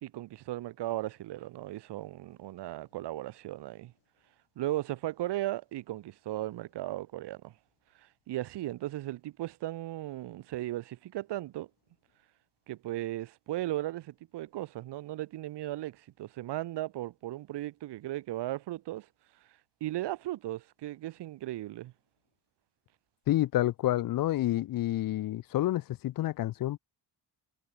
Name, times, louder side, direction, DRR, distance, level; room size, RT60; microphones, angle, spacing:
voice 1, 0.0-3.9 4.6-7.5 8.0-11.7 12.7-19.1 19.8-21.9, right 15 dB, 85° right, 0.8 m, -36 dB
voice 2, 23.3-26.8, left 14 dB, 60° left, 0.5 m, -29 dB
wide cardioid pair, 155°, 40 cm